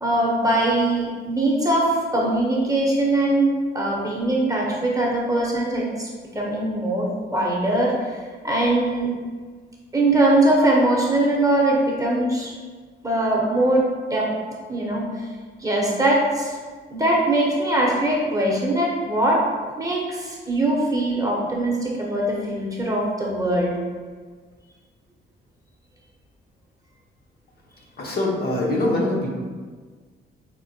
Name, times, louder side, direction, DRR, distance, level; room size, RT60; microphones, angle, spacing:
voice 1, 0.0-6.1 6.3-8.2 8.4-9.1 9.9-12.5 13.0-13.8 14.1-14.3 14.7-15.3 15.6-16.6 16.9-19.4 19.8-23.8, right 1 dB, 15° right, -3 dB, 0.7 m, -21 dB
voice 2, 28.0-29.3, left 1 dB, 50° left, -3 dB, 0.7 m, -23 dB
4.2 x 2.1 x 2.7 m, 1.5 s
cardioid pair, 90°, 20 cm